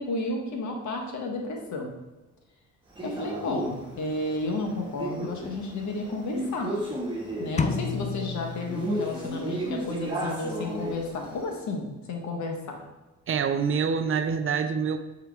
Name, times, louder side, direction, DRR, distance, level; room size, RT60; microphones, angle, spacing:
voice 1, 0.0-1.9 3.0-6.7 7.4-12.8, left 2 dB, 70° left, 1 dB, 1.4 m, -32 dB
Male speech man speaking, 3.0-11.5, right 1 dB, 15° right, 1.9 m, -34 dB
sound 1, 7.6-9.5, left 4 dB, 25° left, 0.5 m, -31 dB
voice 2, 13.3-15.0, right 6 dB, 45° right, 9 dB, 0.5 m, -26 dB
7.5 x 4.6 x 3.5 m, 1.2 s
cardioid pair, 90°, 30 cm